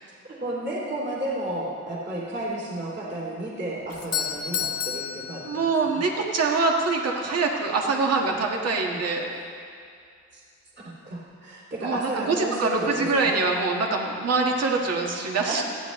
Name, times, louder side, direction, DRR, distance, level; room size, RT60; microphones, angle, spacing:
voice 1, 0.3-5.6 5.9-6.1 11.0-13.4 15.5-15.6, right 1 dB, 35° right, -5 dB, 2.8 m, -32 dB
Doorbell, 3.9-6.1, left 8 dB, 60° left, 1.3 m, -31 dB
voice 2, 5.5-9.3 11.8-15.6, right 3 dB, 55° right, 0 dB, 1.7 m, -24 dB
28.5 x 9.6 x 3.1 m, 2.3 s
wide cardioid pair, 135°, 29 cm